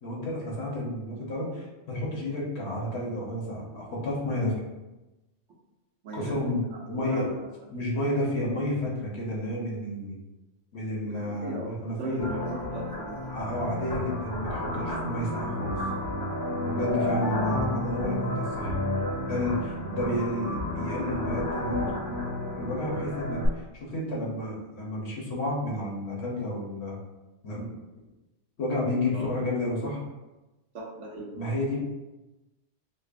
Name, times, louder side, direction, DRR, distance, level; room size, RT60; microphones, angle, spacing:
voice 1, 0.0-4.5 6.1-7.3 7.7-10.1 10.7-12.3 13.3-15.8 16.6-18.7 19.2-22.2 22.5-27.0 27.4-27.7 28.6-30.0 31.3-31.8, left 1 dB, 65° left, -4 dB, 1.2 m, -31 dB
voice 2, 6.9-7.3 11.0-13.3 19.0-19.2 29.1-29.3 30.7-31.3, right 2 dB, 85° right, -1 dB, 1.1 m, -38 dB
sound 1, 12.2-23.5, left 1 dB, 20° left, 0.7 m, -31 dB
5.3 x 2.0 x 2.5 m, 1.1 s
omnidirectional pair, 1.2 m